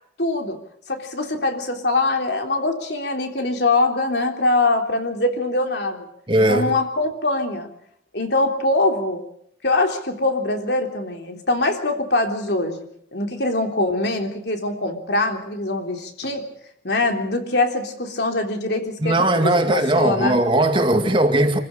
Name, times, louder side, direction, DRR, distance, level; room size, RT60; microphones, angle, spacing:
voice 1, 0.2-0.6 0.9-6.1 6.4-7.7 8.1-9.2 9.6-12.9 13.1-16.5 16.8-20.4, left 2 dB, 60° left, 3.5 m, -23 dB
voice 2, 6.3-6.7 19.0-21.6, right 1 dB, 25° right, 2.2 m, -18 dB
26.5 x 15.0 x 8.6 m
head